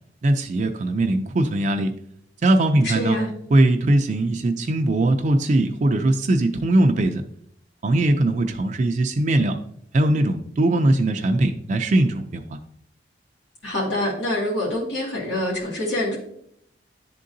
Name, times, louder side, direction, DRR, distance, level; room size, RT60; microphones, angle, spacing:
voice 1, 0.2-1.9 2.4-3.2 3.5-7.2 7.8-9.6 9.9-12.6, right 1 dB, 45° right, 5 dB, 0.4 m, -20 dB
voice 2, 2.8-3.3 13.6-16.2, left 1 dB, 90° left, -6 dB, 1.9 m, -25 dB
10.5 x 3.7 x 2.6 m, 0.69 s
head